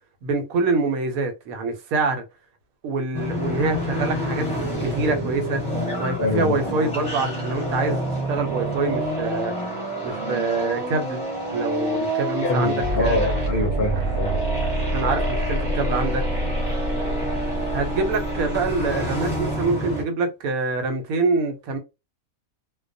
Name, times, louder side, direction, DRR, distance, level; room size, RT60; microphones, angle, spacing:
voice 1, 0.2-2.2 2.8-4.5 4.8-5.6 6.0-9.5 10.0-11.2 11.5-13.3 14.9-16.2 17.7-21.8, right 3 dB, 85° right, 1.1 m, -25 dB
sound 1, 3.1-20.0, right 1 dB, 5° left, 0.9 m, -28 dB
voice 2, 6.2-6.6 12.4-14.4, left 1 dB, 50° left, 0.7 m, -24 dB
sound 2, 12.8-19.6, equal, 65° right, 0.8 m, -27 dB
2.2 x 2.2 x 2.5 m
omnidirectional pair, 1.4 m